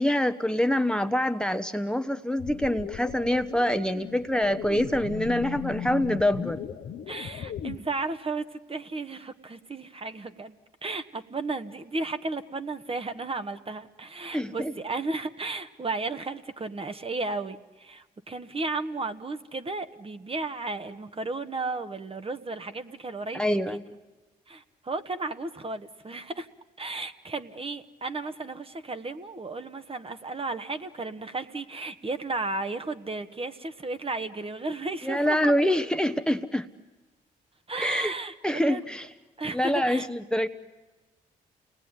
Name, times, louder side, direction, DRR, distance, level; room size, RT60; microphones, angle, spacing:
voice 1, 0.0-6.6 14.3-14.7 23.3-23.8 35.0-36.7 37.8-38.1 38.4-39.1 39.5-40.5, left 1 dB, 5° left, 9 dB, 1.1 m, -25 dB
sound 1, 2.4-7.8, left 8 dB, 70° left, 1.1 m, -37 dB
voice 2, 7.1-10.6 10.8-23.8 24.5-26.5 26.8-35.5 37.7-38.9 39.4-40.1, right 3 dB, 35° right, 9 dB, 1.5 m, -34 dB
28.5 x 19.0 x 9.8 m, 1.2 s
supercardioid pair, 55°, 17 cm